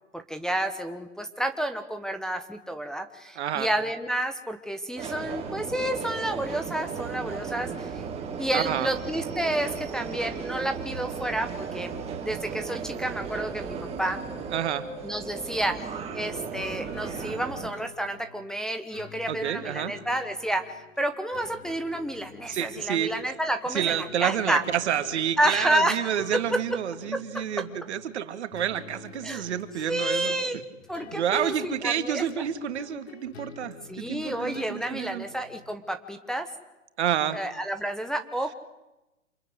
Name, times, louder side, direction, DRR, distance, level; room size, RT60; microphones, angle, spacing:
voice 1, 0.1-8.0 8.4-11.9 12.2-14.2 15.0-15.9 16.1-24.6 25.4-26.1 27.3-27.4 29.2-29.4 29.9-30.6 30.9-32.3 33.9-36.5 37.3-38.5, right 1 dB, ahead, 5 dB, 1.2 m, -30 dB
voice 2, 3.4-3.7 8.5-8.9 14.5-14.9 19.3-19.9 22.5-23.1 23.7-30.3 31.1-35.2 37.0-37.4, right 9 dB, 60° right, 10 dB, 2.4 m, -29 dB
Subway metro underground, 5.0-17.7, right 5 dB, 15° right, 4.2 m, -35 dB
sound 1, 16.5-35.7, left 5 dB, 55° left, 3.6 m, -48 dB
28.0 x 21.5 x 9.7 m, 0.96 s
hypercardioid pair, 140°, 38 cm